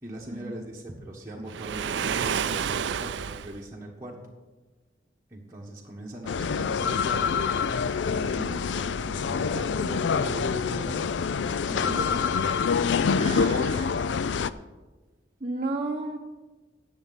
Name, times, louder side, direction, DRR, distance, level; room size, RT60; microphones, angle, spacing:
voice 1, 0.0-4.2 5.3-7.5 8.0-11.1 11.4-12.4, right 1 dB, 15° right, -4 dB, 1.3 m, -40 dB
Waves surf, 1.5-3.6, right 7 dB, 75° right, 0.4 m, -29 dB
sound 1, 6.3-14.5, left 6 dB, 80° left, 0.4 m, -26 dB
voice 2, 11.7-12.1 13.2-14.0 15.4-16.2, right 2 dB, 35° right, -1 dB, 0.8 m, -33 dB
18.0 x 7.0 x 4.1 m, 1.3 s
head